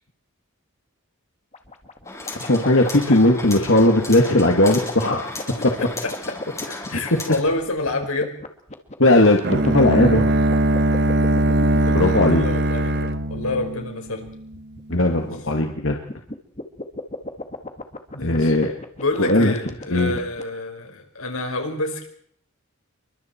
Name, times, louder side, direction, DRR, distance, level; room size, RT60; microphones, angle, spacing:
sound 1, 1.5-20.4, left 2 dB, 30° left, 2.1 m, -36 dB
sound 2, 2.0-7.4, left 2 dB, 15° left, 7.0 m, -35 dB
voice 1, 2.5-5.3 6.7-7.0 9.0-10.2 11.9-12.4 14.9-16.0 18.2-18.7 19.2-19.5 19.9-20.1, left 1 dB, 60° left, 2 dB, 2.2 m, -18 dB
voice 2, 5.6-6.1 6.9-8.4 11.9-14.3 18.1-18.5 19.0-22.1, left 2 dB, 85° left, 4 dB, 5.4 m, -28 dB
Bowed string instrument, 9.4-14.4, right 1 dB, 50° right, 1.4 m, -20 dB
29.0 x 23.5 x 4.6 m, 0.64 s
head